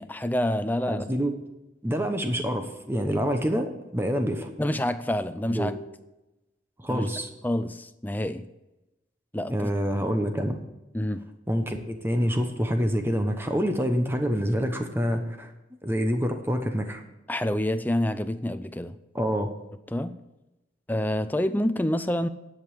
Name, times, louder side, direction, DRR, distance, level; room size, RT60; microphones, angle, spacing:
voice 1, 0.0-1.1 4.6-5.7 6.9-7.1 7.4-8.5 9.3-9.7 10.9-11.2 17.3-19.0 19.9-20.2 20.9-22.3, left 1 dB, 10° left, 0.4 m, -27 dB
voice 2, 0.9-1.3 1.8-4.5 5.5-5.7 6.8-7.3 9.5-10.6 11.5-15.5 15.8-17.0 19.1-19.5, equal, 10° right, 0.9 m, -26 dB
10.5 x 5.4 x 8.4 m
head